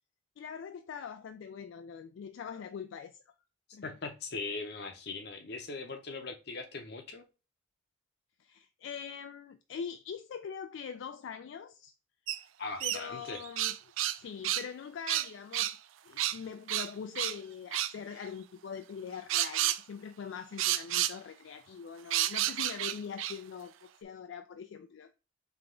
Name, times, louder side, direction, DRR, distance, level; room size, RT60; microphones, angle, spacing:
voice 1, 0.4-3.2 3.7-3.9 8.4-11.9 12.8-13.8 14.2-15.8 16.0-25.1, left 6 dB, 75° left, 0.3 m, -43 dB
voice 2, 3.8-7.2 12.6-13.4, left 3 dB, 55° left, 0.8 m, -40 dB
sound 1, 12.3-12.4 12.8-14.2 14.4-14.7 15.1-15.8 16.2-16.4 16.7-17.4 17.7-17.9 19.3-19.8 20.6-21.2 22.1-23.4, right 13 dB, 85° right, 0.3 m, -31 dB
3.5 x 3.4 x 3.7 m
head